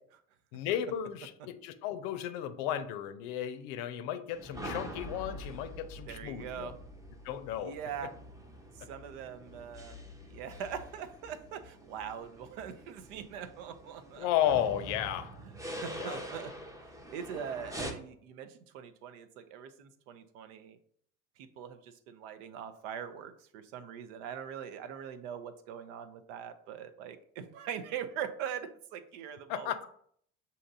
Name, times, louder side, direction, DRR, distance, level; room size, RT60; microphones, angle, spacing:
voice 1, 0.5-6.7 7.2-7.7 14.2-15.3 16.0-16.2 29.5-29.9, left 10 dB, 60° left, 10 dB, 0.6 m, -34 dB
sound 1, 4.3-17.9, equal, 10° right, 0.7 m, -45 dB
voice 2, 6.1-6.7 7.6-8.1 8.7-10.0 10.2-14.3 15.4-16.5 17.1-20.8 21.4-29.7, right 8 dB, 65° right, 11 dB, 0.6 m, -42 dB
7.3 x 2.8 x 2.6 m, 0.64 s
hypercardioid pair, 65°, 40 cm